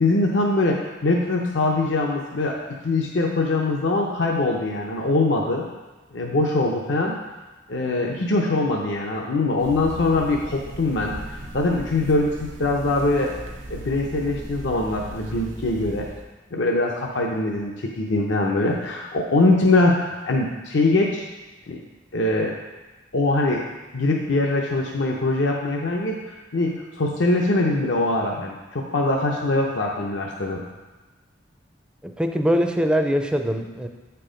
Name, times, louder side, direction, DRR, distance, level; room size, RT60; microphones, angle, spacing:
voice 1, 0.0-2.6 2.8-5.7 6.1-7.1 7.7-12.3 12.6-13.3 13.7-16.1 16.5-21.3 21.7-21.8 22.1-22.6 23.1-23.6 23.9-30.6, left 2 dB, 65° left, -1 dB, 0.7 m, -22 dB
sound 1, 9.6-16.3, right 1 dB, 85° right, 0.8 m, -37 dB
voice 2, 32.0-33.9, equal, 5° right, 5 dB, 0.5 m, -22 dB
8.1 x 4.6 x 5.1 m, 1.2 s
head